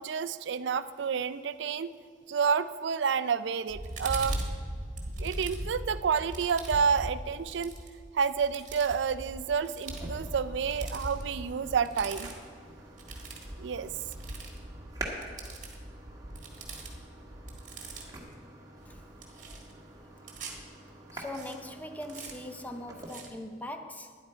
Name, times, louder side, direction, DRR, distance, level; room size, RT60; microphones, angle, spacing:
voice 1, 0.0-1.9 2.3-4.4 5.2-7.7 8.1-12.3 13.6-13.9, right 6 dB, 75° right, 0.4 m, -29 dB
sound 1, 3.7-18.3 18.8-20.6 21.2-21.5 22.1-22.3 23.0-23.3, right 1 dB, 45° right, 1.5 m, -40 dB
sound 2, 9.8-23.1, right 2 dB, 20° right, 1.4 m, -47 dB
voice 2, 21.1-24.2, left 1 dB, 10° left, 0.6 m, -41 dB
12.5 x 10.0 x 4.4 m
head